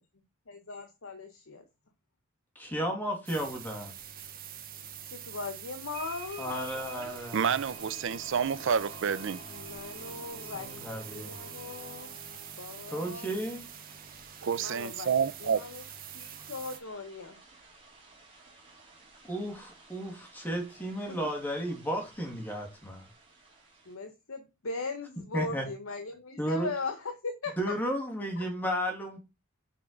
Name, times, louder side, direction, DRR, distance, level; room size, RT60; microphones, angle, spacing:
voice 1, 0.5-1.6 5.0-7.2 9.5-12.1 12.6-13.4 14.6-15.8 16.1-17.4 21.1-21.2 23.9-27.7 28.4-28.5, left 3 dB, 75° left, 0.9 m, -39 dB
voice 2, 2.6-3.9 6.4-7.4 10.4-11.4 12.9-13.7 19.3-23.1 25.3-25.6 26.4-26.7 27.6-29.2, equal, 10° left, 2.2 m, -33 dB
sound 1, 3.3-16.8, right 9 dB, 45° right, 0.9 m, -45 dB
sound 2, 5.9-23.9, right 4 dB, 25° right, 2.8 m, -54 dB
sound 3, 6.7-14.1, left 1 dB, 40° left, 3.0 m, -52 dB
voice 3, 7.3-9.4 14.4-15.6, right 7 dB, 60° right, 0.5 m, -29 dB
5.9 x 4.4 x 5.1 m
head